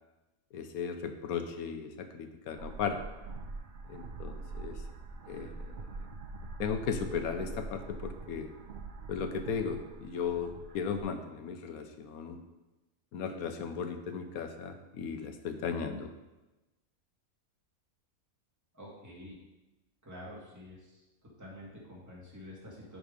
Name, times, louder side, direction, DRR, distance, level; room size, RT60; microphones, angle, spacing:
voice 1, 0.5-3.0 3.9-4.8 5.3-5.9 6.6-8.5 9.1-12.4 13.1-16.1, left 6 dB, 85° left, 7 dB, 1.3 m, -36 dB
sound 1, 2.6-11.0, right 3 dB, 60° right, 0.5 m, -44 dB
voice 2, 18.7-19.4 20.0-21.0 21.4-23.0, left 1 dB, 10° right, -6 dB, 2.2 m, -48 dB
11.0 x 3.9 x 5.3 m, 1.1 s
omnidirectional pair, 1.5 m